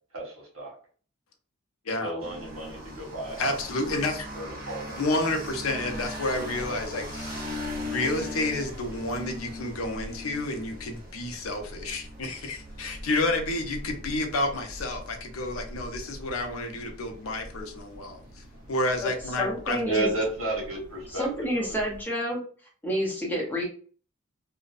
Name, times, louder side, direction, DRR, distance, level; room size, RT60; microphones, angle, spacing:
voice 1, 0.1-0.7 2.0-3.6 4.3-5.0 19.8-21.8, right 2 dB, 75° right, -2 dB, 1.1 m, -32 dB
sound 1, 2.2-22.0, left 1 dB, 45° right, 0.5 m, -40 dB
voice 2, 3.4-4.3 5.0-7.4 7.8-19.8, left 2 dB, 80° left, 5 dB, 0.6 m, -30 dB
voice 3, 19.4-20.1 21.1-22.4 22.8-23.6, equal, 10° left, -2 dB, 0.6 m, -29 dB
2.5 x 2.1 x 2.4 m, 0.43 s
head